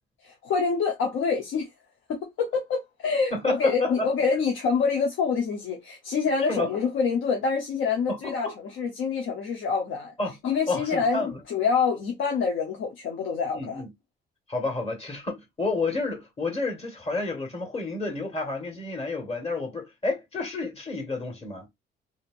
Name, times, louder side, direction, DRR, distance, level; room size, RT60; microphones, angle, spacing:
voice 1, 0.2-1.7 2.1-10.1 10.4-13.8, left 5 dB, 85° left, 0.8 m, -26 dB
voice 2, 3.3-4.1 6.5-6.8 8.1-8.5 10.2-10.4 10.7-11.4 13.5-13.9 14.5-21.7, left 3 dB, 30° left, 1.6 m, -30 dB
2.9 x 2.8 x 2.5 m
cardioid pair, 90°, 20 cm